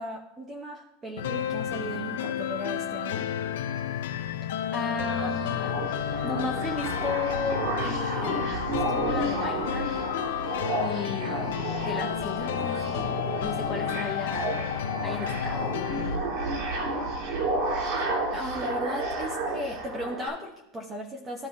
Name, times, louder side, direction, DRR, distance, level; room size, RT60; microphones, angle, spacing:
voice 1, 0.0-3.2 17.8-21.5, equal, 15° right, 1 dB, 1.0 m, -36 dB
sound 1, 1.2-16.2, left 10 dB, 85° left, 0.6 m, -31 dB
voice 2, 4.7-5.8 6.2-8.5 8.9-9.9 10.8-14.5 15.0-15.8, left 4 dB, 15° left, -1 dB, 1.7 m, -34 dB
sound 2, 5.0-20.3, right 2 dB, 55° right, 2.4 m, -32 dB
14.0 x 5.1 x 2.8 m, 0.89 s
supercardioid pair, 155°, 0 cm